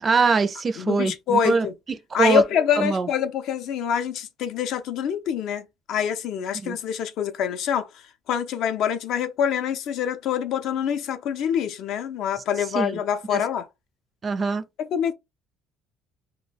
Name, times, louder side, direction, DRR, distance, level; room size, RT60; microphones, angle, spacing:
voice 1, 0.0-1.7 2.1-2.4 2.8-3.1 6.6-6.8 12.7-12.9 13.3-13.4 14.2-14.6, right 4 dB, 30° right, 0.4 m, -22 dB
voice 2, 0.8-1.7 2.1-13.7 14.8-15.1, left 8 dB, 65° left, 0.4 m, -25 dB
2.2 x 2.1 x 3.2 m
cardioid pair, 125°, 0 cm